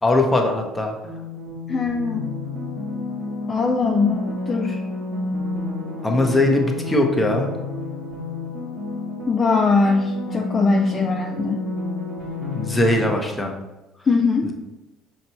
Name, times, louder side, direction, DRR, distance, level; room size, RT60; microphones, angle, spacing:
voice 1, 0.0-0.9 6.0-7.5 12.5-13.5, left 1 dB, 15° left, 2 dB, 0.7 m, -20 dB
sound 1, 1.0-13.1, left 2 dB, 55° right, 1.0 m, -30 dB
voice 2, 1.7-2.3 3.5-4.8 9.3-11.6 14.1-14.5, left 4 dB, 35° left, 3 dB, 0.3 m, -21 dB
5.1 x 2.8 x 2.9 m, 1.0 s
hypercardioid pair, 75°, 0 cm